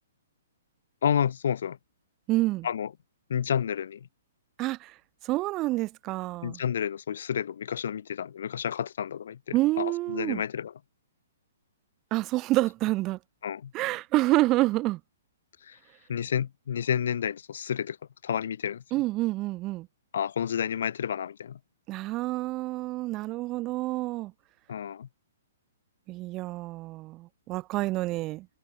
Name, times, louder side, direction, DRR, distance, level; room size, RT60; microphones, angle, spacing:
voice 1, 1.0-1.8 2.6-2.9 3.3-4.1 6.4-10.7 13.4-13.7 15.6-15.8 16.1-18.0 18.2-18.8 20.1-21.6 24.7-25.1, left 8 dB, 70° left, 2.9 m, -30 dB
voice 2, 2.3-2.7 4.6-4.9 5.2-6.6 9.5-10.4 12.1-13.2 13.7-15.0 18.9-19.9 21.9-24.3 26.1-28.5, right 18 dB, 30° right, 1.7 m, -28 dB
hypercardioid pair, 135°, 0 cm